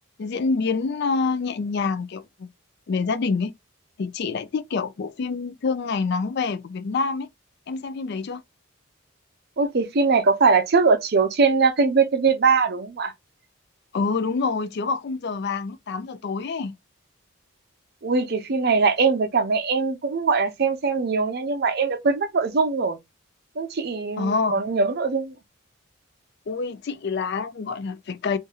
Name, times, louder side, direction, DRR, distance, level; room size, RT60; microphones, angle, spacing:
voice 1, 0.2-2.5 2.9-3.5 4.0-7.3 7.7-8.4 13.9-16.7 24.2-24.6 26.5-28.4, left 4 dB, 50° left, 0.4 m, -26 dB
voice 2, 9.6-13.1 18.0-23.0 23.6-25.3, right 4 dB, 50° right, 0.5 m, -21 dB
2.6 x 2.5 x 3.9 m
head